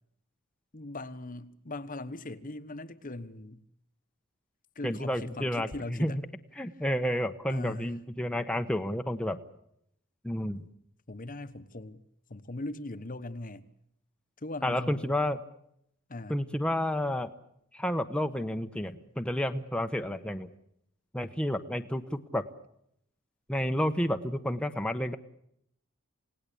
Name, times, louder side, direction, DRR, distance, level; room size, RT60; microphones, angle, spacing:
voice 1, 0.7-3.6 4.7-6.2 7.5-7.9 11.1-12.0 12.3-13.7 14.4-15.1 16.1-16.4, left 2 dB, 40° left, 13 dB, 1.2 m, -40 dB
voice 2, 4.8-6.2 6.6-9.4 10.2-10.6 14.6-15.4 16.3-17.3 17.7-20.5 21.1-22.4 23.5-25.2, left 1 dB, 5° left, 7 dB, 1.0 m, -30 dB
28.5 x 18.0 x 8.6 m, 0.74 s
head